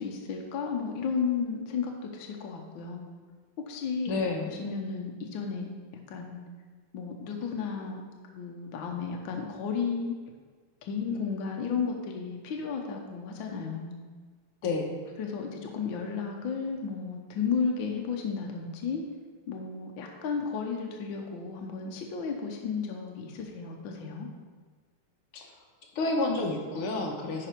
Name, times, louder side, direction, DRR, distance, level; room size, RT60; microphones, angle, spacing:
voice 1, 0.0-3.1 3.7-5.7 6.1-6.4 6.9-8.0 8.3-10.2 10.8-14.0 15.2-19.0 19.5-24.3, left 5 dB, 65° left, 1 dB, 1.6 m, -33 dB
voice 2, 4.1-4.6 14.6-15.0 25.3-25.5 26.0-27.5, left 3 dB, 80° left, 1 dB, 1.9 m, -30 dB
10.0 x 5.4 x 4.5 m, 1.5 s
omnidirectional pair, 2.4 m